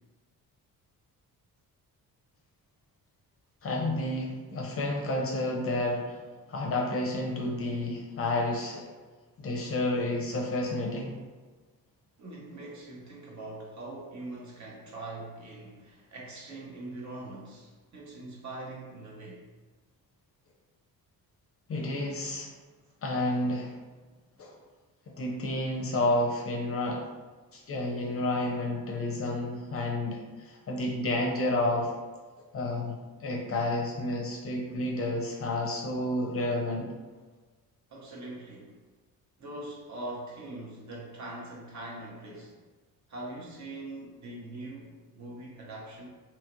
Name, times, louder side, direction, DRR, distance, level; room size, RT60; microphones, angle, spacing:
voice 1, 3.6-6.2 6.5-8.9 9.4-11.1 21.7-22.5 23.0-23.7 24.4-24.5 25.1-27.1 27.5-31.9 32.5-36.9, left 1 dB, 40° left, 0 dB, 0.5 m, -30 dB
voice 2, 12.2-19.4 37.9-38.8 39.4-42.6 43.1-46.1, right 2 dB, 50° right, -3 dB, 0.8 m, -42 dB
2.8 x 2.4 x 2.9 m, 1.3 s
cardioid pair, 120°, 36 cm